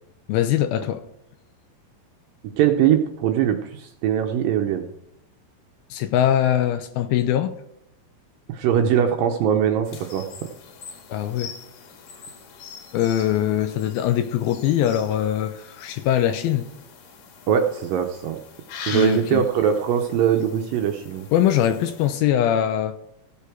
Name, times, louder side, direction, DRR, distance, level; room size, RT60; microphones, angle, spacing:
voice 1, 0.3-1.0 5.9-7.5 11.1-11.5 12.9-16.7 18.9-19.5 21.3-22.9, left 11 dB, 85° left, 2.3 m, -22 dB
voice 2, 2.6-4.9 8.5-10.2 17.5-18.4 18.9-21.3, right 9 dB, 80° right, 2.1 m, -21 dB
sound 1, 9.9-22.1, left 6 dB, 60° left, 2.8 m, -43 dB
15.5 x 6.9 x 4.5 m
omnidirectional pair, 4.7 m